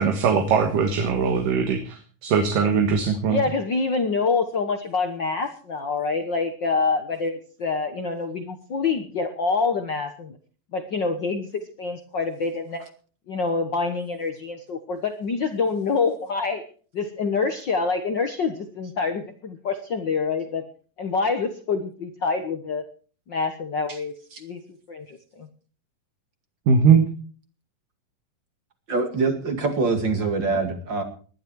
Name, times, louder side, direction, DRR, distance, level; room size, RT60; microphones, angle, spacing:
voice 1, 0.0-2.0 2.2-3.4 26.7-27.1, right 6 dB, 70° right, 5 dB, 3.1 m, -20 dB
voice 2, 3.3-10.4 10.7-12.9 13.3-16.6 16.9-20.6 21.0-22.8 23.3-24.1 24.4-24.6 24.9-25.5, left 4 dB, 80° left, 6 dB, 1.0 m, -26 dB
voice 3, 28.9-31.0, right 3 dB, 35° right, 6 dB, 2.5 m, -24 dB
20.0 x 12.0 x 4.7 m, 0.42 s
omnidirectional pair, 4.0 m